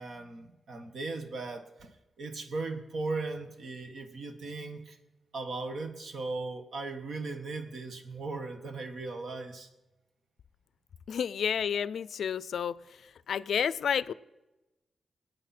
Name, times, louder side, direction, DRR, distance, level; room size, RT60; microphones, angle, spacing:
voice 1, 0.0-1.9 2.2-5.0 5.3-9.7, right 3 dB, 60° right, 7 dB, 1.4 m, -37 dB
voice 2, 11.1-12.7 13.3-14.1, left 8 dB, 75° left, 18 dB, 0.4 m, -30 dB
25.5 x 8.8 x 4.3 m, 1.1 s
wide cardioid pair, 155°, 0 cm